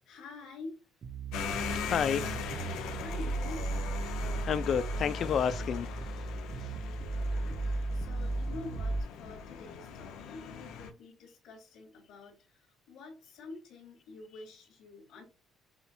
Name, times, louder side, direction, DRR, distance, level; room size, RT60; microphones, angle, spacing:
voice 1, 0.0-0.8 2.8-3.7 7.1-15.2, left 3 dB, 70° left, 2.7 m, -47 dB
sound 1, 1.0-9.0, right 3 dB, 45° right, 0.6 m, -36 dB
sound 2, 1.3-10.9, left 6 dB, 85° left, 0.9 m, -40 dB
voice 2, 1.5-2.4 4.0-5.9 6.1-6.3 6.6-6.7, left 7 dB, 55° left, 0.4 m, -31 dB
6.9 x 2.8 x 2.2 m
cardioid pair, 115°, 0 cm